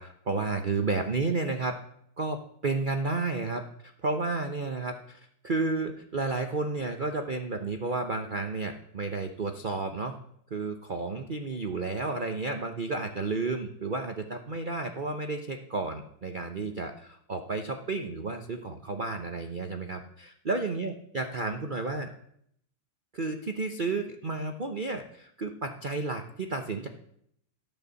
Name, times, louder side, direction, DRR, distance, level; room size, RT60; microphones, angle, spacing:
voice 1, 0.0-1.8 2.2-10.2 10.5-22.1 23.1-26.9, right 3 dB, 70° right, 6 dB, 0.4 m, -32 dB
15.0 x 9.0 x 7.0 m, 0.72 s
omnidirectional pair, 2.4 m